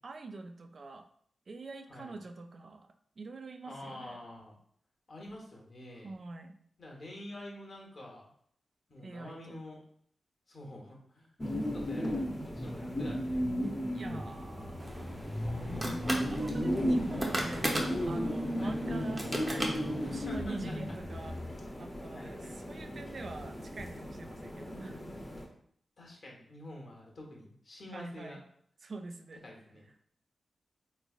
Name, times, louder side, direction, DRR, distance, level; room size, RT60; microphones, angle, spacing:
voice 1, 0.0-1.1 1.5-2.9 3.2-4.2 6.0-6.6 9.0-9.6 13.9-15.3 15.9-17.7 18.1-21.4 21.8-25.0 27.9-28.5 28.8-29.4, right 3 dB, 60° right, 6 dB, 0.4 m, -45 dB
voice 2, 3.6-4.5 5.1-6.1 6.8-8.3 8.9-9.8 10.5-11.4 11.7-13.5 16.6-17.2 18.6-18.8 20.0-20.8 21.1-21.4 22.1-22.5 26.0-28.4 29.4-29.8, left 1 dB, 60° left, -2 dB, 1.1 m, -48 dB
sound 1, 11.4-25.4, equal, 25° left, 0.8 m, -35 dB
sound 2, 14.8-20.4, right 1 dB, 20° right, 0.8 m, -38 dB
3.5 x 3.2 x 2.4 m, 0.63 s
cardioid pair, 55°, 0 cm